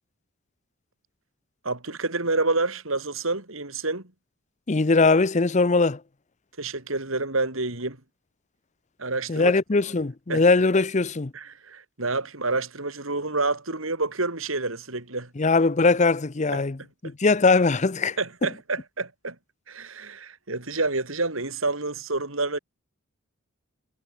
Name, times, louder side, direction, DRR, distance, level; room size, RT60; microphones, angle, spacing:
voice 1, 1.6-4.1 6.6-8.0 9.0-9.5 10.3-10.4 11.3-15.3 16.5-16.6 18.2-19.4 19.7-22.6, right 3 dB, 75° right, 4.1 m, -28 dB
voice 2, 4.7-6.0 9.3-11.3 15.4-18.5, left 3 dB, 35° left, 0.7 m, -21 dB
head